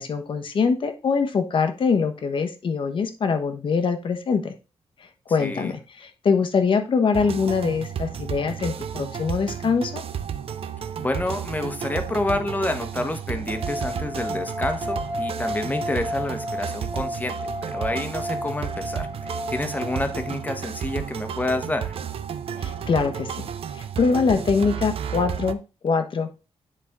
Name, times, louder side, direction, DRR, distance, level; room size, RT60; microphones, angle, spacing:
voice 1, 0.0-4.5 5.3-10.0 22.6-23.5 23.7-26.5, left 5 dB, 50° left, 7 dB, 1.1 m, -23 dB
voice 2, 5.4-5.7 11.0-21.9, left 2 dB, 15° left, 7 dB, 1.0 m, -29 dB
sound 1, 7.1-25.5, right 8 dB, 65° right, 0.5 m, -32 dB
sound 2, 13.5-20.6, left 1 dB, 15° right, 0.9 m, -33 dB
10.0 x 4.0 x 3.6 m, 0.31 s
wide cardioid pair, 135°, 11 cm